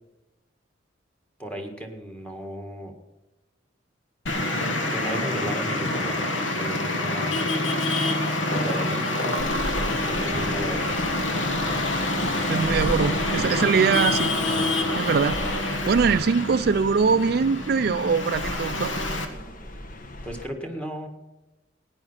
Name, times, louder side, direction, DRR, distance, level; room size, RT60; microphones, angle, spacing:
voice 1, 1.4-2.9 4.5-6.3 6.5-7.5 8.3-9.6 10.0-11.0 20.2-21.1, equal, 5° left, 3 dB, 1.8 m, -35 dB
Traffic noise roadway noise, 4.3-19.3, left 2 dB, 85° left, 1.7 m, -26 dB
sound 1, 9.4-20.5, left 1 dB, 45° left, 1.2 m, -37 dB
voice 2, 12.5-14.3 14.9-15.4 15.9-18.9, right 5 dB, 55° right, 12 dB, 0.4 m, -22 dB
17.0 x 9.8 x 5.7 m, 1.0 s
head